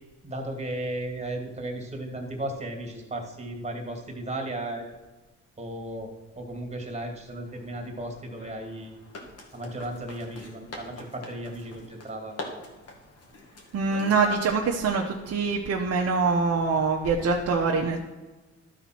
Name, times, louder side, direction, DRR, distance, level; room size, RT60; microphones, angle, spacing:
voice 1, 0.2-4.9 5.6-6.1 6.4-8.9 9.5-12.3, right 1 dB, 20° right, 2 dB, 2.3 m, -35 dB
sound 1, 7.5-15.3, left 2 dB, 55° left, 2.2 m, -44 dB
voice 2, 13.7-18.0, right 4 dB, 50° right, 0 dB, 1.0 m, -24 dB
12.5 x 4.2 x 6.0 m, 1.2 s
cardioid pair, 90°, 30 cm